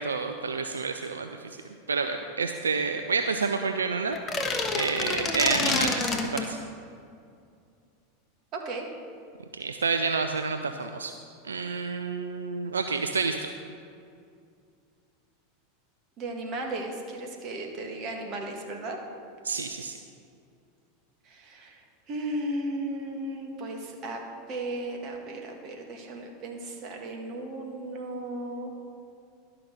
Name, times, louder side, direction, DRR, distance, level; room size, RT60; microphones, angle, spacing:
voice 1, 0.0-1.5 1.9-6.6 9.5-11.1 11.4-13.5 19.4-20.0, right 4 dB, 85° right, 6 dB, 0.4 m, -29 dB
sound 1, 4.1-6.5, left 3 dB, 25° left, 1.2 m, -27 dB
voice 2, 8.5-8.9 16.2-19.0 21.3-21.8 22.1-24.2 24.5-28.7, right 1 dB, 45° right, 2 dB, 1.8 m, -35 dB
12.0 x 5.8 x 6.6 m, 2.4 s
figure-of-eight pair, 85°, 0 cm